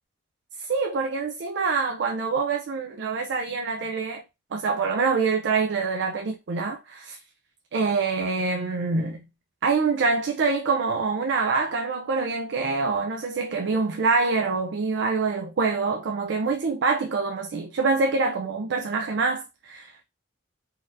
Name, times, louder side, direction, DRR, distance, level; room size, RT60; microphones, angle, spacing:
voice 1, 0.6-4.2 4.5-7.2 7.7-9.2 9.6-19.9, right 4 dB, 65° right, 0.4 m, -25 dB
4.0 x 2.6 x 2.5 m
head